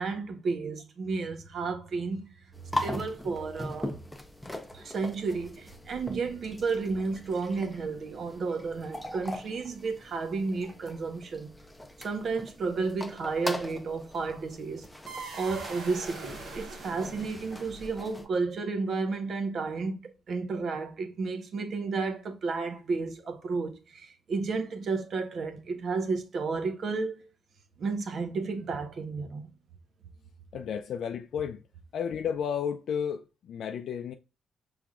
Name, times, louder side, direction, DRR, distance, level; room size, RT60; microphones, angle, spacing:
voice 1, 0.0-2.2 2.8-4.0 4.7-11.5 12.0-14.9 15.3-27.3 27.8-29.4, right 4 dB, 55° right, 1.0 m, -32 dB
sound 1, 2.5-18.3, left 1 dB, 10° left, 0.7 m, -41 dB
sound 2, 15.1-18.2, right 4 dB, 70° right, 1.4 m, -43 dB
voice 2, 30.5-31.6 31.9-34.1, left 7 dB, 70° left, 0.4 m, -32 dB
5.8 x 3.4 x 2.4 m
cardioid pair, 105°, 0 cm